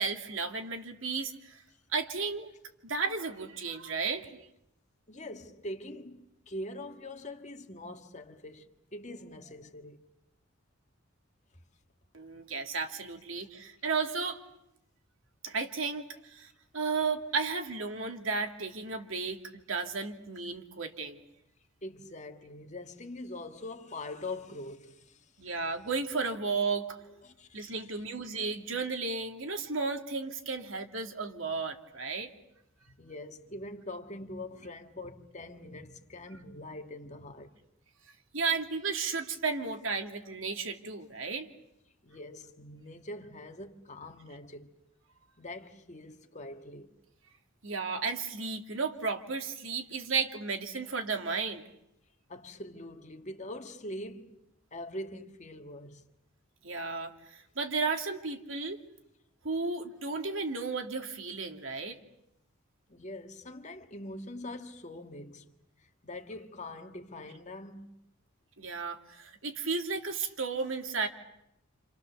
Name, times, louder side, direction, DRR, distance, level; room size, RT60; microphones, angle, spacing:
voice 1, 0.0-1.6 1.9-2.6 2.8-4.3 12.1-14.4 15.4-21.2 25.4-27.0 27.5-32.3 38.3-41.5 47.6-51.6 56.6-58.8 59.4-62.0 68.6-71.1, right 4 dB, 75° right, 2.5 m, -34 dB
voice 2, 5.1-10.0 21.8-25.2 27.0-28.0 33.0-37.5 42.0-44.8 45.4-46.9 52.3-54.4 54.7-56.1 62.9-65.5 66.0-68.0, left 1 dB, 35° left, 1.7 m, -43 dB
29.5 x 28.0 x 6.9 m
head